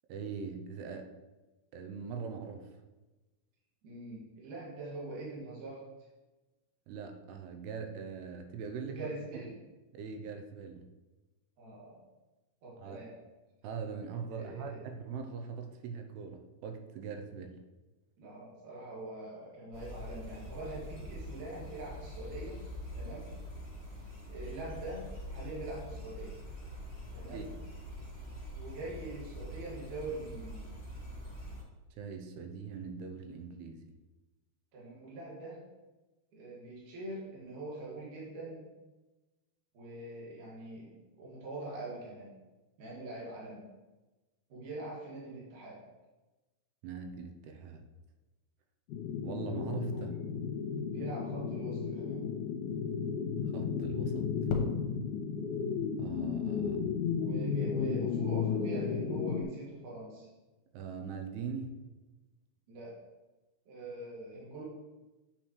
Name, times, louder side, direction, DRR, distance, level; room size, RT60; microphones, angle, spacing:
voice 1, 0.1-1.1 1.7-2.8 6.9-9.1 9.9-10.9 12.8-13.1 13.6-17.6 27.3-27.4 31.9-33.9 46.8-47.8 49.2-50.1 53.5-54.3 56.0-56.9 60.7-61.9, right 5 dB, 90° right, 5 dB, 2.7 m, -41 dB
voice 2, 3.8-5.8 8.9-9.6 11.6-12.0 12.6-13.2 14.3-14.8 18.2-22.6 22.9-23.3 24.3-26.4 27.1-27.5 28.5-30.7 34.7-35.6 36.3-38.7 39.7-42.3 42.8-43.7 44.5-45.8 49.9-50.0 50.9-52.2 57.2-60.3 62.7-63.0 63.7-64.6, right 2 dB, 55° right, -5 dB, 3.3 m, -43 dB
sound 1, 19.7-31.6, equal, 20° left, 1.8 m, -44 dB
sound 2, 48.9-59.4, left 6 dB, 70° left, 2.0 m, -33 dB
7.8 x 7.7 x 3.2 m, 1.1 s
omnidirectional pair, 4.6 m